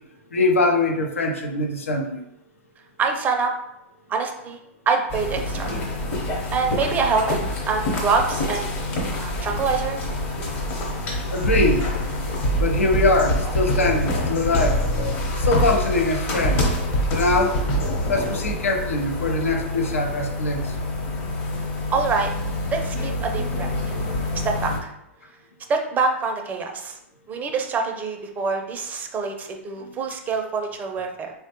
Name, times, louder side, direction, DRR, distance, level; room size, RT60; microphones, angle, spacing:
voice 1, 0.3-2.2 11.3-11.9 12.6-14.9 15.4-16.7 17.1-17.6 18.1-20.8 29.8-29.9, left 2 dB, 90° left, 2 dB, 0.6 m, -22 dB
voice 2, 3.0-3.5 4.1-4.6 4.9-5.7 6.5-7.4 7.7-8.7 9.2-10.0 21.9-22.3 22.7-23.7 24.4-24.9 25.7-26.9 27.3-31.3, right 4 dB, 25° right, 3 dB, 0.4 m, -25 dB
sound 1, 5.1-24.8, left 2 dB, 35° left, 0.9 m, -28 dB
Drum kit, 10.7-10.9 11.4-18.5, right 1 dB, 55° left, 1.0 m, -25 dB
3.2 x 2.2 x 2.8 m, 0.82 s
hypercardioid pair, 115°, 7 cm